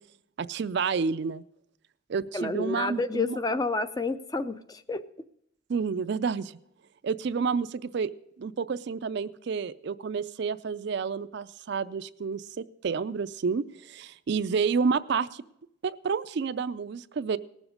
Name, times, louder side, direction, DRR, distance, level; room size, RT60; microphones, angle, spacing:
voice 1, 0.4-1.4 2.1-3.4 5.7-6.5 7.0-8.1 8.4-12.4 12.8-15.4 15.8-17.4, right 5 dB, 50° right, 13 dB, 0.4 m, -29 dB
voice 2, 2.3-5.1, left 3 dB, 20° left, 12 dB, 0.4 m, -29 dB
19.0 x 7.1 x 5.1 m, 0.77 s
head